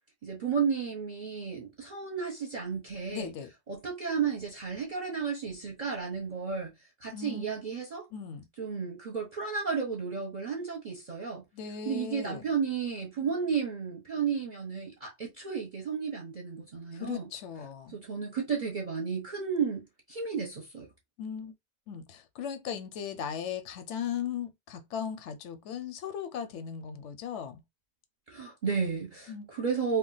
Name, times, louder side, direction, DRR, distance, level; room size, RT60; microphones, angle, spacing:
voice 1, 0.2-3.3 3.7-6.7 7.0-8.1 8.6-11.4 11.8-17.2 17.9-20.9 28.3-30.0, right 6 dB, 45° right, 0.7 m, -33 dB
voice 2, 3.1-3.5 7.1-7.5 8.1-8.5 11.5-12.4 16.9-18.0 21.2-21.5 21.9-27.6 29.3-29.5, left 8 dB, 80° left, 0.9 m, -37 dB
2.4 x 2.2 x 3.8 m
omnidirectional pair, 1.2 m